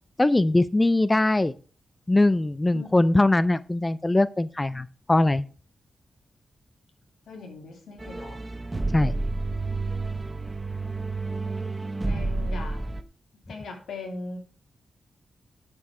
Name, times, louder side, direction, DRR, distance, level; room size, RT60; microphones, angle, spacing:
voice 1, 0.2-1.5 2.1-5.4 8.9-9.1, left 2 dB, 20° left, 16 dB, 0.4 m, -21 dB
voice 2, 7.3-8.4 11.8-12.8 13.5-14.4, left 3 dB, 90° left, 3 dB, 2.7 m, -39 dB
sound 1, 8.0-13.0, right 2 dB, 20° right, 0.9 m, -30 dB
9.7 x 7.1 x 4.8 m, 0.38 s
wide cardioid pair, 105°, 0 cm